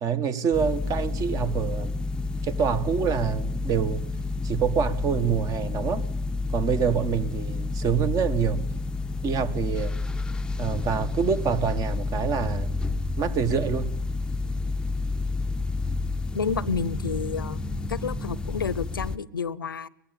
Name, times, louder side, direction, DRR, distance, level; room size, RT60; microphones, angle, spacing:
voice 1, 0.0-1.9 2.4-4.0 4.4-6.0 6.5-8.6 9.2-10.0 10.6-12.7 13.2-13.9, right 7 dB, 30° right, 1.5 m, -26 dB
sound 1, 0.5-19.2, left 3 dB, 10° left, 0.8 m, -30 dB
voice 2, 16.3-17.6 17.9-19.9, left 6 dB, 90° left, 0.7 m, -30 dB
21.0 x 15.5 x 8.9 m
hypercardioid pair, 105°, 11 cm